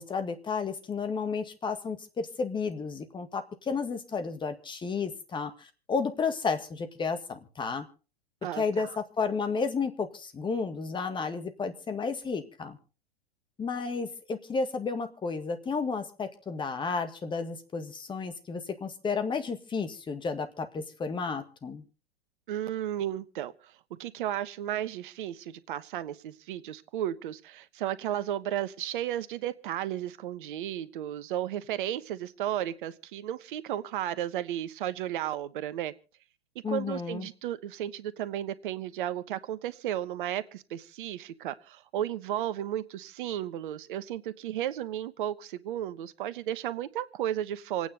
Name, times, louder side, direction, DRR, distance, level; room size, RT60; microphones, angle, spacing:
voice 1, 0.0-7.9 8.6-12.8 13.6-21.8 36.6-37.3, left 5 dB, 15° left, 8 dB, 1.8 m, -32 dB
voice 2, 8.4-9.0 22.5-35.9 36.7-47.9, right 11 dB, 55° right, 15 dB, 1.1 m, -34 dB
27.0 x 9.4 x 4.0 m, 0.35 s
hypercardioid pair, 105°, 30 cm